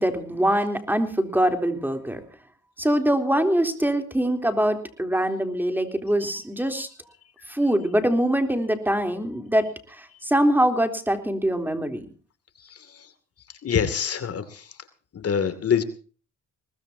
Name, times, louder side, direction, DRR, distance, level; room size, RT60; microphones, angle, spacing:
voice 1, 0.0-2.2 2.8-6.9 7.5-12.1, right 1 dB, 5° right, 6 dB, 3.5 m, -23 dB
voice 2, 12.6-13.1 13.6-14.8 15.1-15.8, left 7 dB, 50° left, 11 dB, 2.7 m, -26 dB
21.5 x 19.5 x 2.8 m, 0.40 s
cardioid pair, 90°, 30 cm